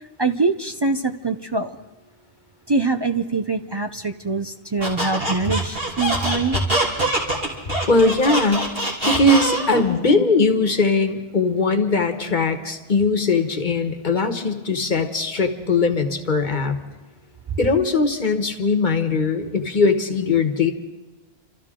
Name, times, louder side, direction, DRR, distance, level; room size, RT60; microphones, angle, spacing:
voice 1, 0.2-1.8 2.7-6.6, right 3 dB, 40° right, 7 dB, 0.4 m, -24 dB
Squeak, 4.8-9.9, right 1 dB, 65° right, 3.5 m, -23 dB
voice 2, 7.7-8.7 9.0-16.7 17.6-20.7, left 3 dB, 50° left, 6 dB, 1.3 m, -20 dB
28.5 x 13.5 x 3.7 m, 1.2 s
omnidirectional pair, 1.1 m